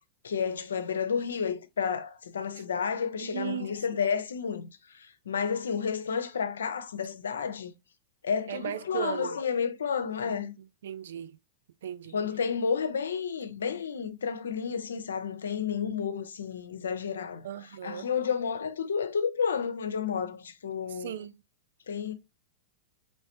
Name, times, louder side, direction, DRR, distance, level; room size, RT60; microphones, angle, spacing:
voice 1, 0.2-7.7 8.2-10.5 12.1-17.5 17.8-21.1 21.9-22.1, left 6 dB, 80° left, 0.6 m, -31 dB
voice 2, 3.2-4.0 8.5-9.4 10.2-10.5 10.8-11.4 11.8-12.2 17.4-18.1 20.9-21.3, right 10 dB, 70° right, 0.4 m, -37 dB
4.1 x 3.3 x 2.7 m
hypercardioid pair, 100°, 0 cm